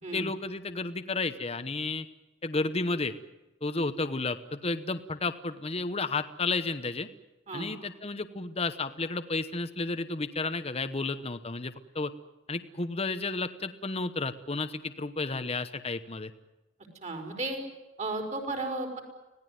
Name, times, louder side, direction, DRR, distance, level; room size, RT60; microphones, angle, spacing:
voice 1, 0.1-2.1 2.4-3.1 3.6-7.1 7.5-12.1 12.5-16.3, left 3 dB, 30° left, 9 dB, 1.0 m, -32 dB
voice 2, 17.0-17.6 18.0-19.0, right 2 dB, 35° right, 4 dB, 4.8 m, -34 dB
25.5 x 17.5 x 9.4 m, 1.1 s
head